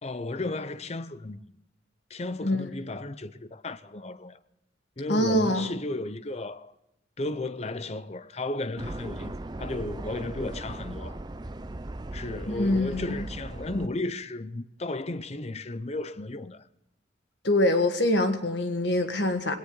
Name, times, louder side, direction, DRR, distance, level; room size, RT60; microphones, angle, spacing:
voice 1, 0.0-1.4 2.1-4.4 5.0-6.7 7.2-11.2 12.1-16.7, left 2 dB, 35° left, 0.6 m, -34 dB
voice 2, 5.1-5.8 12.5-13.2 17.4-19.6, left 1 dB, 60° left, 1.7 m, -24 dB
sound 1, 8.8-13.9, right 2 dB, 20° right, 0.5 m, -38 dB
18.5 x 18.0 x 3.9 m
head